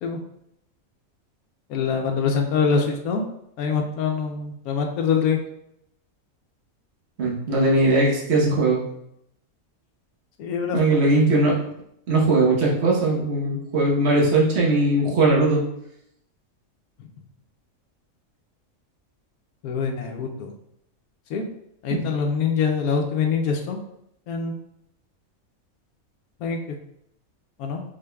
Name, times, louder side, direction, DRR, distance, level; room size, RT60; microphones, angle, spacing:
voice 1, 1.7-3.2 3.6-5.4 10.4-10.8 19.6-20.5 21.3-21.5 21.8-23.8 24.3-24.6 26.4-26.6 27.6-27.8, left 6 dB, 85° left, 3 dB, 1.1 m, -24 dB
voice 2, 7.2-8.8 10.7-11.5 12.1-15.6 21.9-22.0, right 2 dB, 50° right, -3 dB, 1.3 m, -19 dB
5.0 x 3.7 x 2.2 m, 0.77 s
omnidirectional pair, 1.5 m